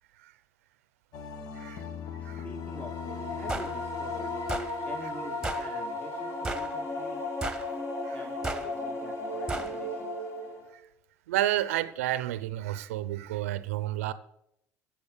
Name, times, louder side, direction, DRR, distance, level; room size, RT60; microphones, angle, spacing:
sound 1, 1.1-6.5, left 7 dB, 60° left, 1.2 m, -41 dB
voice 1, 1.5-1.8 2.2-2.4 8.0-8.2 10.7-10.8 11.3-14.1, right 14 dB, 85° right, 0.6 m, -31 dB
voice 2, 2.2-4.4 4.8-7.2 8.1-10.2, equal, 20° left, 2.0 m, -47 dB
sound 2, 2.6-10.7, left 2 dB, 40° left, 3.8 m, -35 dB
sound 3, 3.5-3.7 4.5-4.7 5.4-5.7 6.4-6.7 7.4-7.7 8.4-8.7 9.5-9.7, right 2 dB, 10° right, 1.6 m, -33 dB
15.0 x 7.4 x 6.5 m
hypercardioid pair, 70°, 7 cm